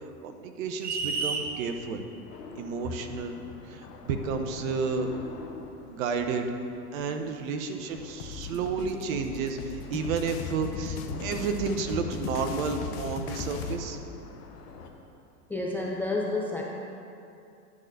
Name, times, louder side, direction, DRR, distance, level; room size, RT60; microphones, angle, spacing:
voice 1, 0.0-2.0 2.6-3.4 3.7-5.1 5.9-6.5 6.9-14.0, right 5 dB, 60° right, 6 dB, 1.0 m, -31 dB
sound 1, 0.8-1.5, right 4 dB, 20° right, 0.7 m, -30 dB
sound 2, 1.1-14.9, left 4 dB, 85° left, 1.2 m, -47 dB
voice 2, 6.9-7.3 8.4-8.8 15.5-16.6, left 2 dB, 5° left, -3 dB, 0.4 m, -32 dB
sound 3, 8.2-13.8, left 6 dB, 40° left, 0.7 m, -37 dB
10.5 x 3.9 x 6.7 m, 2.6 s
hypercardioid pair, 105°, 46 cm